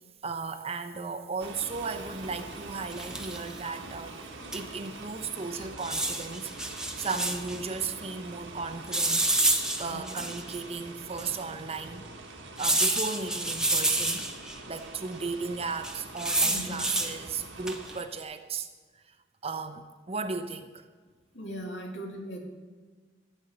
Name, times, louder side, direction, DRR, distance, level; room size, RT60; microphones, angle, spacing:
voice 1, 0.2-4.2 4.5-6.5 7.0-9.3 9.8-12.2 12.6-14.2 14.7-18.7 18.9-19.2 19.4-20.8, right 4 dB, 35° right, 8 dB, 0.7 m, -35 dB
sound 1, 1.4-18.0, right 2 dB, 75° right, 1.6 m, -44 dB
sound 2, 2.9-3.5 4.5-4.6 4.9-5.0 5.8-7.6 8.9-10.5 11.2-11.3 12.6-14.6 15.8-17.1 17.7-18.0, right 2 dB, 5° right, 0.9 m, -28 dB
voice 2, 6.9-7.3 9.9-10.3 16.4-16.8 21.3-22.4, equal, 70° left, 0 dB, 2.3 m, -40 dB
15.0 x 5.4 x 7.7 m, 1.4 s
head